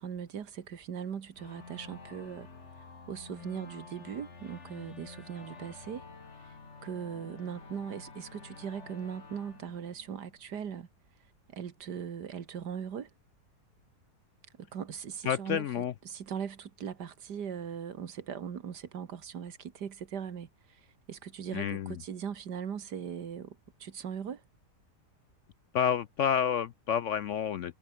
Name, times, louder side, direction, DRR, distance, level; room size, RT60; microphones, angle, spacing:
voice 1, 0.0-2.5 2.8-6.0 6.4-10.9 11.5-13.1 14.5-24.4, right 7 dB, 85° right, 2.1 m, -40 dB
sound 1, 1.4-10.7, left 4 dB, 45° left, 2.5 m, -50 dB
voice 2, 15.2-15.9 21.5-22.0 25.7-27.8, left 8 dB, 65° left, 0.8 m, -29 dB
omnidirectional pair, 1.7 m